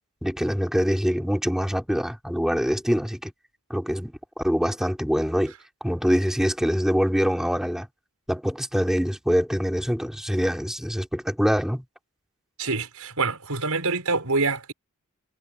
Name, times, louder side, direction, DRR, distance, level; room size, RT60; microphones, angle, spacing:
voice 1, 0.2-3.3 3.7-5.5 5.8-7.9 8.3-11.8, equal, ahead, 5.4 m, -24 dB
voice 2, 12.6-14.7, right 3 dB, 85° right, 5.6 m, -26 dB
head